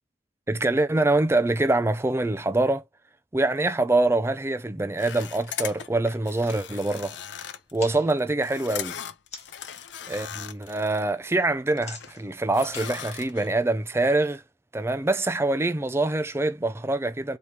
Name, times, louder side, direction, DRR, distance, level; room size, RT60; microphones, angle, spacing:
voice 1, 0.5-2.8 3.3-7.2 7.7-9.0 10.1-14.4 14.7-17.4, right 2 dB, 15° right, 0.4 m, -24 dB
sound 1, 5.0-11.0 11.4-12.2 12.5-13.5, left 9 dB, 80° left, 0.6 m, -38 dB
sound 2, 7.6-9.7 10.1-10.5 10.8-14.1, left 5 dB, 40° left, 1.3 m, -47 dB
4.2 x 3.1 x 3.4 m
head